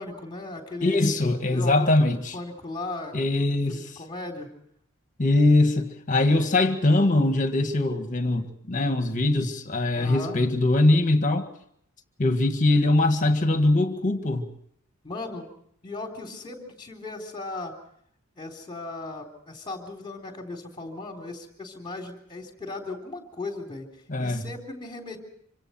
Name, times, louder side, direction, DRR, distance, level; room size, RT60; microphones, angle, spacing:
voice 1, 0.0-1.1 1.5-3.2 3.5-4.5 6.2-6.6 9.9-10.4 15.0-15.5 15.8-17.8 18.4-23.9 24.2-25.2, left 2 dB, 20° left, 3.6 m, -37 dB
voice 2, 0.8-2.4 3.1-4.0 5.2-11.5 12.2-14.4 24.1-24.5, left 2 dB, 35° left, 1.8 m, -22 dB
26.0 x 25.5 x 4.5 m
head